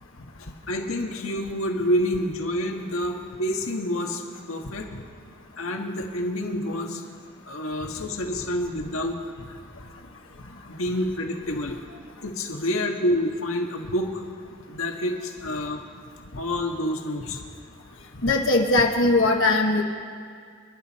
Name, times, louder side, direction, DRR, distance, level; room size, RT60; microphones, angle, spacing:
voice 1, 0.4-5.0 5.6-7.0 7.5-9.2 9.5-9.6 10.7-14.2 14.7-15.8 16.4-17.4, left 1 dB, 85° left, 2 dB, 1.6 m, -28 dB
voice 2, 18.2-19.8, left 2 dB, 65° left, 1 dB, 1.2 m, -20 dB
28.5 x 11.0 x 4.3 m, 2.1 s
head